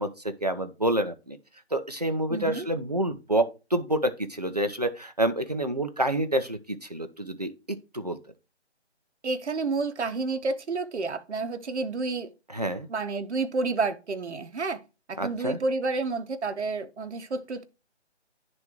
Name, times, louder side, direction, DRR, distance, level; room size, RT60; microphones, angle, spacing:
voice 1, 0.0-1.4 1.7-8.2 12.5-12.9 15.2-15.6, right 1 dB, 40° right, 0.4 m, -28 dB
voice 2, 2.3-2.7 9.2-12.3 12.9-14.8 15.1-17.6, right 3 dB, 75° right, 0.9 m, -30 dB
10.5 x 3.5 x 2.9 m
figure-of-eight pair, 165°, 35 cm